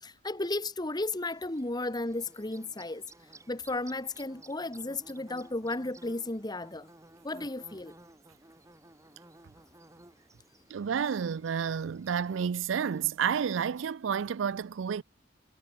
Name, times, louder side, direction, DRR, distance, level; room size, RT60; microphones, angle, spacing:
voice 1, 0.0-3.1 3.5-6.9 7.2-7.9, left 2 dB, 20° left, 1.4 m, -34 dB
Bird / Buzz, 1.0-13.9, right 2 dB, 15° right, 4.6 m, -57 dB
voice 2, 10.7-15.0, right 7 dB, 80° right, 0.4 m, -30 dB
head